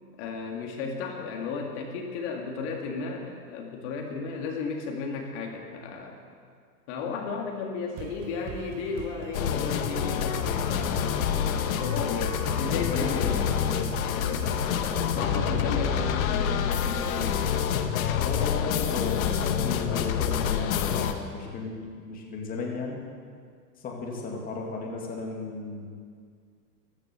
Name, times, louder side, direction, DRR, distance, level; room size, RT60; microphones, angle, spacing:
voice 1, 0.2-6.2 6.9-13.7 14.2-14.5 15.1-17.4, left 4 dB, 40° left, 1 dB, 2.2 m, -34 dB
sound 1, 8.0-17.3, right 8 dB, 20° right, 0.5 m, -42 dB
sound 2, 9.3-21.1, left 8 dB, 55° left, 1.4 m, -27 dB
voice 2, 12.7-14.0 18.2-23.0 23.8-25.9, left 3 dB, 20° left, -1 dB, 2.3 m, -35 dB
14.5 x 12.5 x 6.8 m, 2.1 s
hypercardioid pair, 135°, 48 cm